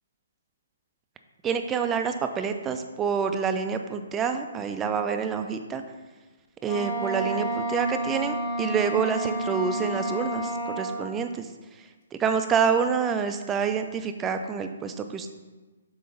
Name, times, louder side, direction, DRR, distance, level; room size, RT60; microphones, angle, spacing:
voice 1, 1.4-5.8 6.6-15.3, right 6 dB, 10° right, 7 dB, 0.3 m, -27 dB
Wind instrument woodwind instrument, 6.6-11.2, right 1 dB, 40° left, 1.0 m, -30 dB
7.6 x 2.9 x 5.3 m, 1.2 s
hypercardioid pair, 165°, 0 cm